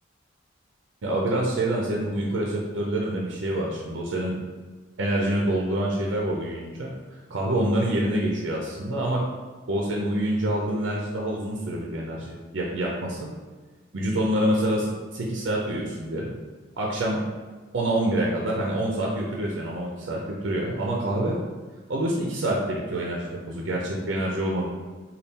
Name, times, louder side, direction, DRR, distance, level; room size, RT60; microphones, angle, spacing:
voice 1, 1.0-4.3 5.0-6.9 7.3-9.2 9.7-13.3 13.9-16.3 16.8-17.2 17.7-21.4 21.9-24.7, right 1 dB, 75° right, -2 dB, 0.5 m, -26 dB
4.1 x 2.3 x 3.5 m, 1.4 s
head